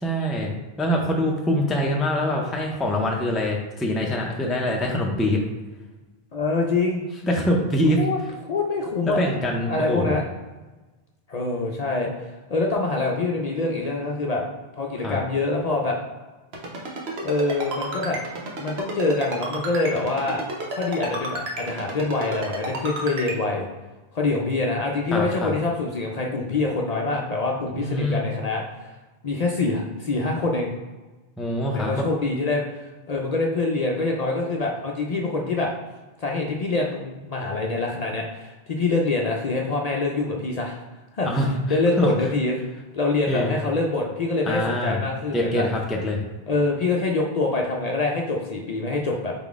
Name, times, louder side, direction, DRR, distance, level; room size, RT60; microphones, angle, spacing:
voice 1, 0.0-0.5 0.8-5.4 7.2-8.0 9.1-10.1 15.0-15.2 25.1-25.5 27.7-28.2 31.4-32.1 41.2-42.1 43.3-43.6 44.5-45.0 45.3-46.2, left 1 dB, ahead, 0 dB, 0.4 m, -24 dB
voice 2, 6.3-7.0 8.0-8.2 8.4-9.2 9.7-10.2 11.3-12.1 12.5-14.4 14.7-16.0 17.2-18.2 18.6-20.4 20.7-23.7 24.1-28.9 29.2-30.7 31.7-35.7 36.2-40.8 41.1-41.3 41.7-42.6 42.9-45.7 46.5-49.3, left 3 dB, 50° left, -1 dB, 0.5 m, -25 dB
Ringtone, 16.5-23.3, right 2 dB, 85° right, 1.1 m, -31 dB
3.9 x 3.7 x 3.5 m, 1.2 s
omnidirectional pair, 1.0 m